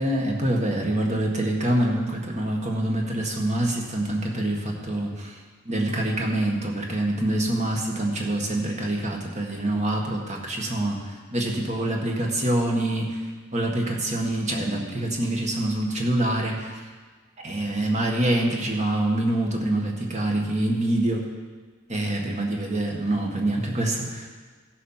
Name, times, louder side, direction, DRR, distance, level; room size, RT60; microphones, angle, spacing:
voice 1, 0.0-5.4 5.7-13.2 13.5-16.8 17.4-21.2 21.9-24.3, right 1 dB, 35° right, 0 dB, 1.7 m, -25 dB
15.0 x 7.1 x 5.7 m, 1.4 s
head